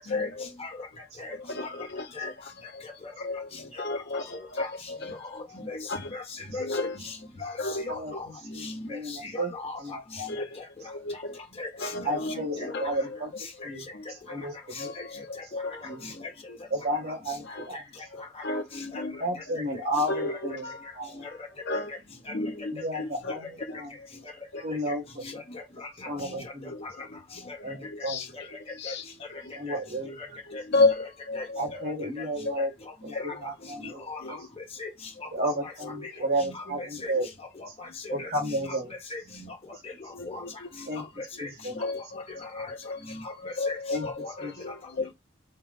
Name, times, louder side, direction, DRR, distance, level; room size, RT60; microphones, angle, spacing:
voice 1, 0.1-0.5 1.3-2.3 2.7-2.8 3.2-5.2 5.7-6.1 6.6-7.0 7.6-7.9 10.3-10.6 10.9-11.4 11.8-12.4 12.6-12.9 13.9-14.0 14.3-14.4 14.8-15.8 16.5-16.6 17.5-17.7 18.1-19.2 20.0-20.4 20.6-20.8 21.6-21.9 22.3-22.7 23.0-23.3 26.7-26.8 27.7-28.3 28.8-29.0 30.5-31.7 32.5-32.6 33.1-33.3 34.2-34.3 38.1-38.2 40.1-40.5 41.7-43.0 43.3-45.1, left 3 dB, 60° left, 0.8 m, -32 dB
voice 2, 5.2-5.8 6.1-6.2 6.5-6.7 7.0-7.2 7.4-7.6 7.8-9.8 10.1-10.2 10.6-10.7 11.6-12.7 14.7-14.8 16.0-16.3 17.0-17.1 17.7-17.8 18.5-19.0 19.5-19.6 20.3-20.4 21.1-21.3 22.9-23.3 25.2-26.5 27.5-27.6 28.0-28.1 28.8-28.9 30.2-30.3 30.5-30.9 31.3-31.4 31.7-31.8 32.6-32.7 33.8-34.4 34.8-34.9 35.4-35.7 36.4-37.1 37.6-37.9 38.2-38.8 39.1-39.5 39.8-39.9 40.2-40.4 40.8-41.1 41.4-41.5 42.6-42.7 43.1-43.8 44.2-44.3 44.6-44.7, left 3 dB, 30° left, 1.2 m, -39 dB
voice 3, 7.9-9.5 9.8-10.3 12.0-13.3 13.6-13.9 14.3-15.2 15.8-16.1 16.7-17.8 19.2-20.7 20.9-21.2 22.7-23.9 24.6-25.4 26.1-26.7 27.6-28.2 29.6-30.2 31.6-32.7 33.0-34.4 35.3-37.3 38.1-38.9 40.9-41.0 41.4-41.8 43.9-44.1 44.4-44.7, right 1 dB, 55° right, 1.8 m, -32 dB
4.5 x 2.2 x 4.0 m
head